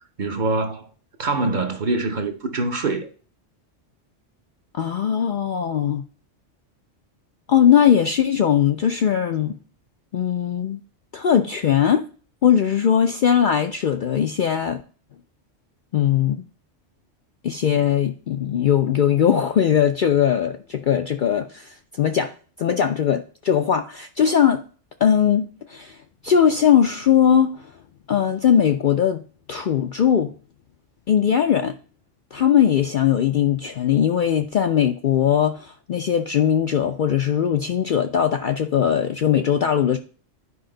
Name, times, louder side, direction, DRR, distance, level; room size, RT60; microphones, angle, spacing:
voice 1, 0.2-0.9 1.2-3.1, right 3 dB, 45° right, 0.8 m, -24 dB
voice 2, 4.7-6.0 7.5-9.6 10.1-10.8 11.1-12.0 12.4-14.8 15.9-16.4 17.4-22.3 22.6-24.6 25.0-26.0 26.2-27.6 28.1-29.2 29.5-30.3 31.1-31.8 32.3-40.0, left 9 dB, 60° left, 0.5 m, -20 dB
11.0 x 5.0 x 3.8 m
omnidirectional pair, 1.3 m